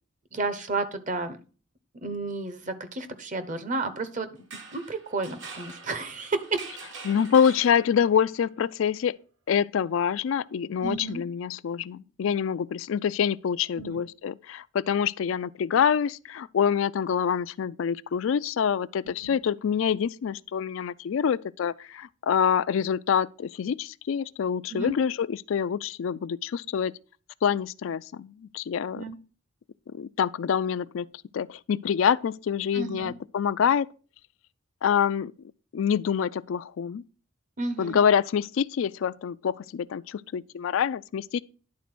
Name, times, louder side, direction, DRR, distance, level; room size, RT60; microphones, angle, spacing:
voice 1, 0.3-1.4 2.0-4.3 4.7-6.6 10.8-11.2 13.8-14.0 19.2-19.3 24.7-25.0 28.9-29.2 32.7-33.1 37.6-38.0, right 3 dB, 40° right, 0.9 m, -32 dB
sound 1, 4.4-8.2, right 4 dB, 65° right, 1.7 m, -44 dB
voice 2, 7.0-9.2 9.5-26.9 27.4-29.0 29.9-31.1 31.3-33.9 34.8-35.3 35.7-37.0 37.8-41.4, left 7 dB, 75° left, 0.3 m, -26 dB
10.5 x 4.1 x 6.0 m
head